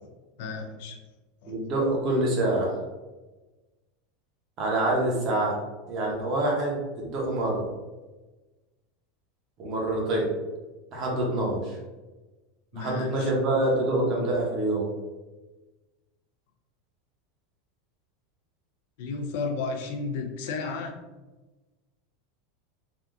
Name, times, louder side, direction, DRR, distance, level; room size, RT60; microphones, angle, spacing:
voice 1, 0.4-1.0 1.4-1.5 12.7-13.3 19.0-21.0, left 4 dB, 60° left, 4 dB, 0.4 m, -33 dB
voice 2, 1.5-2.7 4.6-5.6 5.9-6.8 7.0-7.6 9.6-10.3 10.9-11.8 12.7-14.9, right 1 dB, 30° right, -2 dB, 0.8 m, -26 dB
3.5 x 2.3 x 2.6 m, 1.2 s
supercardioid pair, 170°, 0 cm